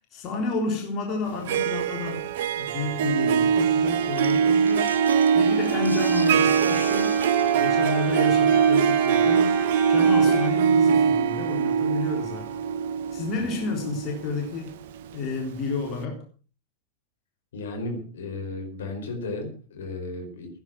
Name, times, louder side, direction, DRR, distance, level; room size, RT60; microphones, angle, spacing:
voice 1, 0.1-2.3 2.6-7.2 7.5-9.6 9.9-12.5 13.1-14.8 15.1-16.2, left 4 dB, 35° left, 3.8 m, -31 dB
Harp, 1.3-15.2, right 7 dB, 55° right, 0.7 m, -22 dB
sound 1, 3.0-10.5, equal, 5° right, 1.5 m, -38 dB
sound 2, 4.0-13.3, right 1 dB, 85° right, 1.4 m, -43 dB
voice 2, 17.5-20.5, left 2 dB, 60° left, 5.0 m, -34 dB
16.5 x 9.8 x 6.2 m
figure-of-eight pair, 90°, 0 cm